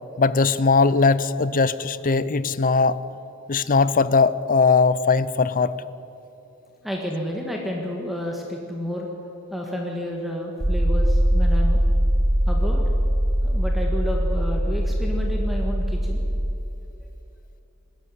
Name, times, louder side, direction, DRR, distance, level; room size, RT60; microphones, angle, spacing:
voice 1, 0.2-3.0 3.5-5.8, left 4 dB, 40° left, 16 dB, 0.6 m, -19 dB
voice 2, 6.8-9.1 9.5-11.8 12.5-12.8 13.4-16.2, left 1 dB, ahead, 0 dB, 1.8 m, -30 dB
sound 1, 10.6-16.5, equal, 20° right, 1.0 m, -21 dB
20.5 x 13.5 x 9.8 m, 2.9 s
head